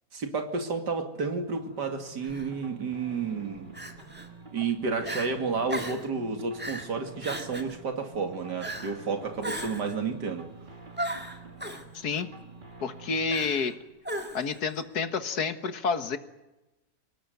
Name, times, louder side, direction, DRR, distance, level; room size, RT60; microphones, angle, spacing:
voice 1, 0.1-3.7 4.5-10.5, right 4 dB, 80° right, 5 dB, 3.0 m, -31 dB
sound 1, 1.5-15.6, right 4 dB, 30° right, 2.2 m, -49 dB
Crying sobbing, 2.2-2.5 3.7-4.3 4.7-4.8 5.0-5.3 5.7-6.1 6.6-6.9 7.2-7.7 8.6-9.0 9.4-10.0 11.0-11.8 13.3-13.7 14.0-14.6, right 1 dB, 5° right, 2.1 m, -36 dB
voice 2, 11.9-12.3 12.8-13.8 14.3-16.2, left 5 dB, 65° left, 10 dB, 2.0 m, -29 dB
24.5 x 19.0 x 9.3 m, 1.0 s
omnidirectional pair, 1.8 m